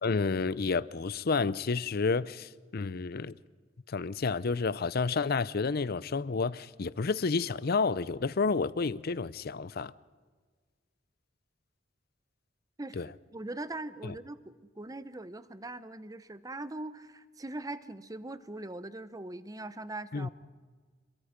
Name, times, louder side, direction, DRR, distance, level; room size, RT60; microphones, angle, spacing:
voice 1, 0.0-3.3 3.9-9.9 13.0-13.1 14.0-14.2 20.1-20.3, left 4 dB, 55° left, 0.6 m, -30 dB
voice 2, 12.8-20.3, right 2 dB, 20° right, 0.8 m, -41 dB
27.0 x 22.5 x 5.2 m
head